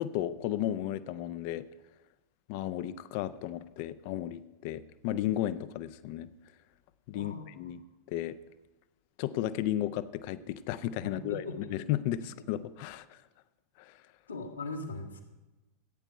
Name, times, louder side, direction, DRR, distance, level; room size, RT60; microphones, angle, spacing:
voice 1, 0.0-1.7 2.5-6.3 7.1-7.8 8.1-8.4 9.2-13.2 13.8-14.0, left 12 dB, 45° left, 14 dB, 0.5 m, -34 dB
voice 2, 7.1-7.6 11.0-11.7 14.3-15.2, left 3 dB, 80° left, -1 dB, 1.9 m, -40 dB
15.0 x 9.1 x 4.6 m, 1.1 s
figure-of-eight pair, 90°, 0 cm